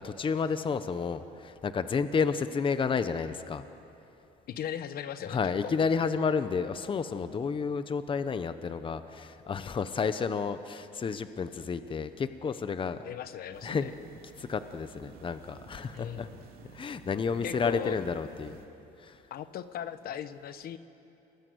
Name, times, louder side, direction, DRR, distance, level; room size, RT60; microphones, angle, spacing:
voice 1, 0.0-3.6 5.3-13.0 13.6-13.9 14.4-16.3 16.7-18.6 19.0-19.2, left 5 dB, 30° left, 11 dB, 0.9 m, -31 dB
voice 2, 4.5-5.7 13.0-13.9 15.9-16.4 17.4-18.0 19.3-20.8, left 9 dB, 65° left, 12 dB, 1.2 m, -38 dB
sound 1, 13.5-18.6, right 6 dB, 60° right, 3.5 m, -52 dB
29.0 x 20.0 x 8.0 m, 2.8 s
cardioid pair, 110°, 17 cm